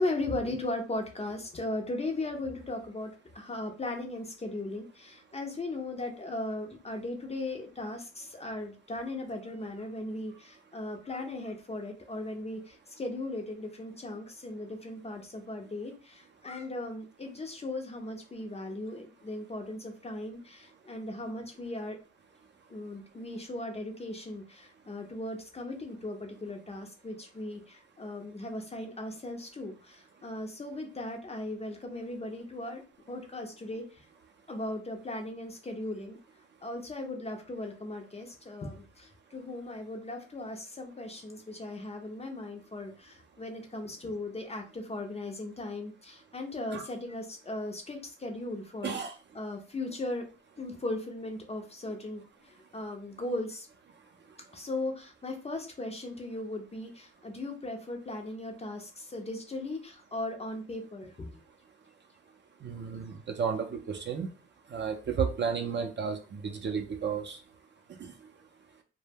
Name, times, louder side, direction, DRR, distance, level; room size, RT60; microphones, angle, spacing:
voice 1, 0.0-22.0 22.7-32.8 33.1-34.1 34.5-36.2 36.6-49.0 49.3-50.2 50.6-53.7 54.5-61.4 62.9-63.1, left 2 dB, 20° left, 3 dB, 0.5 m, -37 dB
voice 2, 48.8-49.1 53.9-54.6 62.6-64.3 64.7-67.4 67.9-68.3, right 6 dB, 35° right, 3 dB, 0.5 m, -33 dB
2.1 x 2.1 x 3.3 m, 0.35 s
cardioid pair, 90°, 30 cm